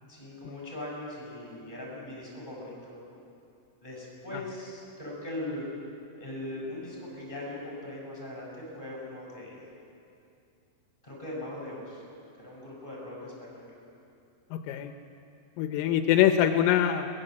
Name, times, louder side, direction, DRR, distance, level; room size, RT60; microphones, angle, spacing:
voice 1, 0.1-3.0 3.8-5.7 6.2-9.6 11.0-12.0 12.4-13.7, left 1 dB, 10° left, -4 dB, 6.6 m, -40 dB
voice 2, 14.5-14.9 15.6-17.1, left 11 dB, 85° left, 6 dB, 3.4 m, -24 dB
22.0 x 20.5 x 7.9 m, 2.6 s
omnidirectional pair, 5.8 m